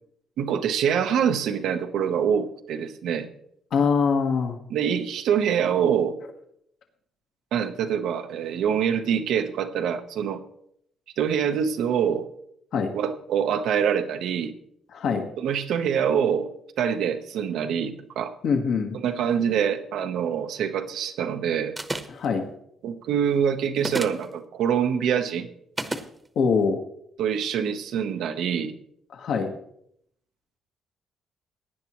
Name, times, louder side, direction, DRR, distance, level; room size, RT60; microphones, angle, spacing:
voice 1, 0.4-3.3 4.7-6.2 7.5-10.4 11.2-12.3 12.9-14.5 15.4-16.5 16.8-18.3 19.0-21.8 22.8-25.5 27.2-28.7, right 8 dB, 80° right, 7 dB, 1.1 m, -25 dB
voice 2, 3.7-4.6 12.7-12.9 14.9-15.2 18.4-19.0 22.1-22.4 26.3-26.8 29.1-29.5, left 5 dB, 70° left, 4 dB, 1.5 m, -23 dB
sound 1, 21.8-22.3 23.8-24.3 25.8-26.1, right 2 dB, 20° right, 1.0 m, -30 dB
17.0 x 9.8 x 3.1 m, 0.71 s
cardioid pair, 90°, 0 cm